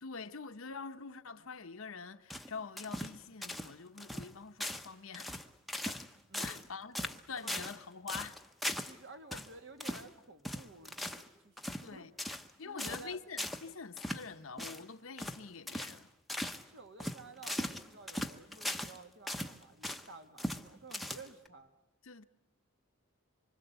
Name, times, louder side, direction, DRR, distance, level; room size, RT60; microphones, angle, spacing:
voice 1, 0.0-5.4 5.9-6.0 6.4-7.0 7.3-8.4 9.3-9.4 11.8-12.1 12.6-16.1 22.0-22.2, left 5 dB, 80° left, 1.0 m, -45 dB
sound 1, 2.3-3.2 3.4-3.7 4.0-4.3 4.6-4.9 5.1-6.1 6.3-6.7 6.9-7.8 8.1-9.0 9.3-9.5 9.8-10.1 10.4-11.3 11.6-11.9 12.2-12.5 12.8-13.1 13.4-13.6 14.0-14.2 14.6-14.8 15.2-15.4 15.7-16.0 16.3-16.6 17.0-19.0 19.3-20.1 20.4-20.6 20.9-21.5, left 1 dB, ahead, 0.9 m, -39 dB
voice 2, 6.3-6.7 6.9-7.2 7.4-7.5 8.8-12.1 12.6-13.2 16.6-21.7, right 3 dB, 60° right, 2.0 m, -53 dB
25.5 x 24.5 x 8.1 m
head